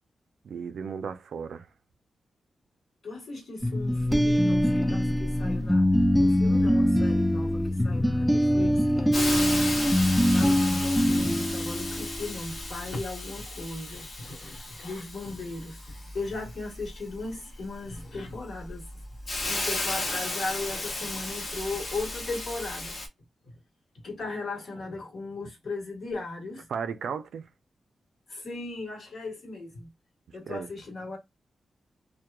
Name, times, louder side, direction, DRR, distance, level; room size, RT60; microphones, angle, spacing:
voice 1, 0.4-1.7 26.7-27.5 30.5-30.7, right 6 dB, 85° right, 0.4 m, -35 dB
voice 2, 3.0-5.9 6.2-9.5 10.3-18.8 19.5-23.0 24.0-26.7 28.3-29.9 30.3-31.2, left 3 dB, 55° left, 1.2 m, -37 dB
sound 1, 3.6-12.3, equal, ahead, 0.3 m, -23 dB
Hiss, 9.1-23.1, left 2 dB, 35° left, 0.8 m, -35 dB
2.9 x 2.2 x 2.2 m
wide cardioid pair, 160°, 0 cm